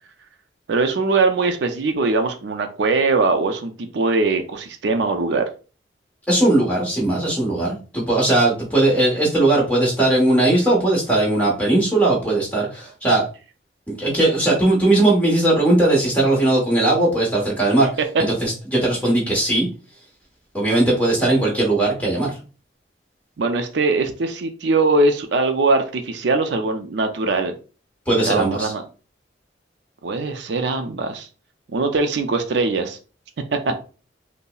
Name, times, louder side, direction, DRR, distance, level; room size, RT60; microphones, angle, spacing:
voice 1, 0.7-5.5 18.1-18.2 23.4-27.5 28.1-28.8 30.0-31.3 31.7-33.0 33.5-33.7, right 3 dB, 70° right, 6 dB, 0.4 m, -21 dB
voice 2, 6.3-13.2 13.9-17.9 18.4-19.7 20.5-22.3 28.1-28.7, right 2 dB, 10° left, -3 dB, 1.1 m, -18 dB
5.3 x 2.0 x 2.3 m, 0.36 s
head